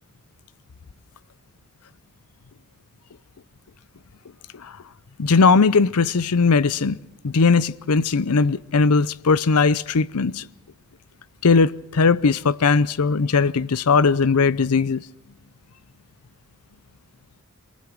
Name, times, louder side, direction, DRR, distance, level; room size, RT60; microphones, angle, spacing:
voice 1, 5.2-7.0 7.2-10.4 11.4-15.0, left 4 dB, 85° left, 0.6 m, -19 dB
23.5 x 19.5 x 6.2 m
head